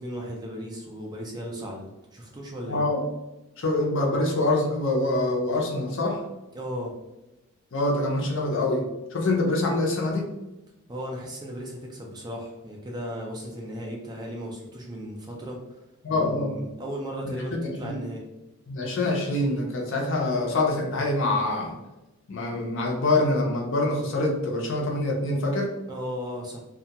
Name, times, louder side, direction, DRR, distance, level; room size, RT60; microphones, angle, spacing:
voice 1, 0.0-2.9 6.5-6.9 10.9-15.8 16.1-18.2 25.9-26.6, equal, 20° right, -1 dB, 0.3 m, -36 dB
voice 2, 2.7-3.0 3.6-6.2 7.7-8.8 9.1-10.3 16.0-16.6 17.2-17.3 17.8-18.0 18.7-21.7 22.3-25.7, left 2 dB, 55° left, 0 dB, 0.5 m, -25 dB
2.3 x 2.2 x 2.8 m, 1.0 s
head